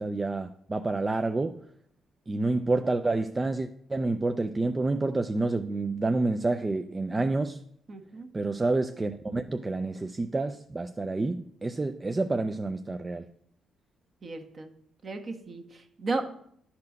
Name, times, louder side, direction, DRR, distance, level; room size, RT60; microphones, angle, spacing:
voice 1, 0.0-1.6 2.3-7.6 8.3-13.3, right 2 dB, 20° right, 0.4 m, -28 dB
voice 2, 7.9-8.3 14.2-14.7 15.0-16.2, right 3 dB, 40° right, 1.2 m, -34 dB
10.5 x 4.3 x 5.3 m
cardioid pair, 90°, 0 cm